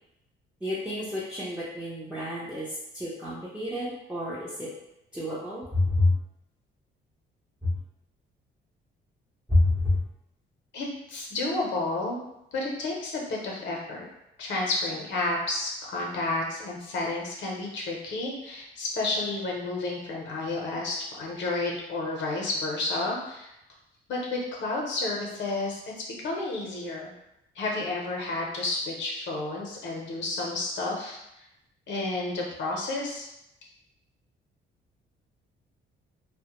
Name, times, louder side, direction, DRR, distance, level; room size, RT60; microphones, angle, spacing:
voice 1, 0.6-4.7 5.1-6.1 7.6-7.7 9.5-10.0, left 2 dB, 5° right, -9 dB, 0.5 m, -28 dB
voice 2, 10.7-12.2 12.5-14.1 14.4-23.5 24.1-25.9 26.2-27.1 27.5-31.2 31.9-33.3, left 2 dB, 70° left, -1 dB, 0.6 m, -31 dB
2.1 x 2.0 x 2.9 m, 0.86 s
cardioid pair, 90°, 20 cm